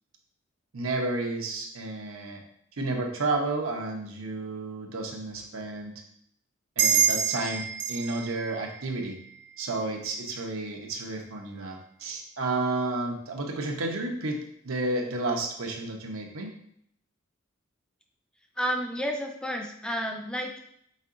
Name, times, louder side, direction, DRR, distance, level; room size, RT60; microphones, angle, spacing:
voice 1, 0.7-2.4 2.8-5.9 6.8-9.2 9.6-16.5, right 2 dB, 85° right, 2 dB, 0.8 m, -31 dB
sound 1, 6.8-9.9, right 8 dB, 55° right, 0.7 m, -28 dB
voice 2, 18.6-20.6, equal, 5° left, 2 dB, 0.4 m, -31 dB
5.3 x 3.7 x 2.6 m, 0.69 s
head